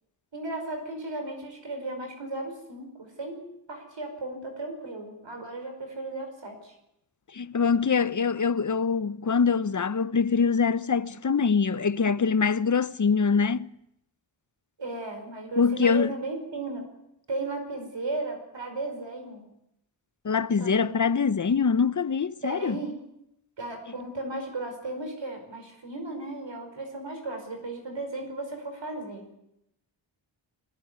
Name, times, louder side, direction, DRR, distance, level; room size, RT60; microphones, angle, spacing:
voice 1, 0.3-3.4 3.7-6.7 14.8-16.8 17.3-19.5 20.6-20.9 22.4-23.0 23.6-29.3, right 2 dB, 70° right, 5.3 m, -35 dB
voice 2, 7.3-13.7 15.6-16.1 20.2-22.8, left 5 dB, 40° left, 0.9 m, -24 dB
21.0 x 18.0 x 9.6 m
cardioid pair, 60°, 46 cm